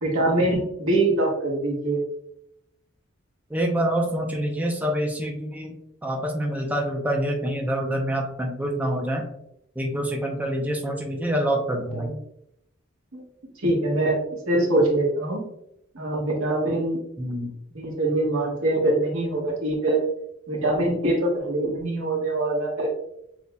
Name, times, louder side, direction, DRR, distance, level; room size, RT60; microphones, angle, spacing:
voice 1, 0.0-2.0 11.9-12.2 13.1-13.2 13.6-14.2 14.5-15.4 15.9-17.0 17.7-20.0 20.5-22.9, right 2 dB, 85° right, -2 dB, 1.5 m, -23 dB
voice 2, 3.5-5.8 6.0-9.3 9.8-12.1 17.2-17.5, right 1 dB, 10° right, 1 dB, 0.5 m, -26 dB
6.6 x 2.8 x 2.2 m, 0.78 s
head